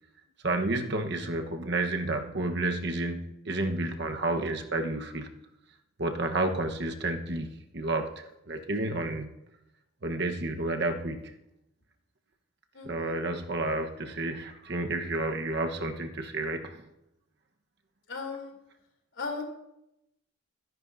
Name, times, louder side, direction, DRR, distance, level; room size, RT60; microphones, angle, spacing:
voice 1, 0.4-5.3 6.0-9.3 10.0-11.3 12.8-16.8, right 2 dB, 55° right, 4 dB, 1.2 m, -31 dB
voice 2, 12.7-13.2 18.1-18.5 19.1-19.4, left 4 dB, 70° left, 1 dB, 3.3 m, -36 dB
23.5 x 10.5 x 2.7 m, 0.85 s
head